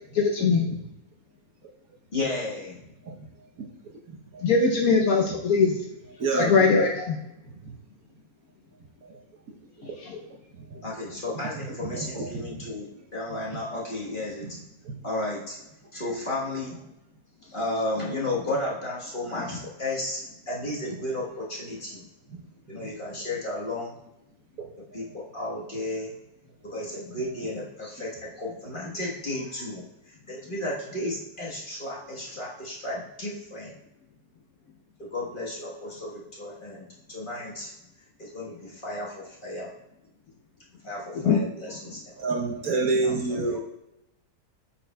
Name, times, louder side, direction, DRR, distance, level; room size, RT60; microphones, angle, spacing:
voice 1, 0.1-0.6 4.4-5.8 6.4-7.2 10.0-10.2 41.3-41.4, left 4 dB, 65° left, 1 dB, 1.0 m, -21 dB
voice 2, 2.1-2.8 10.8-14.6 15.0-15.6 15.9-16.8 17.4-22.0 22.7-23.9 24.8-26.1 26.6-33.8 35.0-37.7 38.0-39.7 40.8-42.0 42.6-43.6, left 2 dB, 30° left, -5 dB, 1.3 m, -33 dB
voice 3, 6.2-6.5 11.8-12.3 42.2-43.6, right 3 dB, 60° right, 0 dB, 1.2 m, -26 dB
8.1 x 5.8 x 2.2 m, 0.88 s
omnidirectional pair, 1.9 m